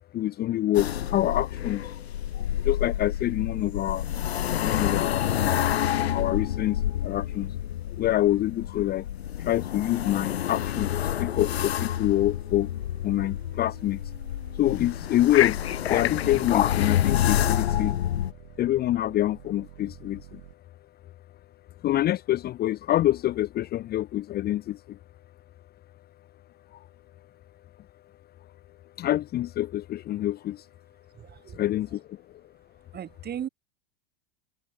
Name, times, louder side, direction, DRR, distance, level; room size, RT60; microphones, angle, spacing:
voice 1, 0.1-2.0 2.3-4.1 4.6-7.5 8.0-9.1 9.4-12.7 13.0-14.0 14.5-18.0 18.6-20.4 21.8-25.0 26.7-26.9 29.0-30.7 31.5-32.2, left 14 dB, 30° left, 0.7 m, -26 dB
sound 1, 0.7-18.3, left 11 dB, 90° left, 1.6 m, -28 dB
sound 2, 9.4-20.5, right 27 dB, 60° right, 3.9 m, -50 dB
voice 2, 31.1-32.0 32.9-33.5, right 9 dB, 30° right, 6.2 m, -38 dB
hypercardioid pair, 105°, 31 cm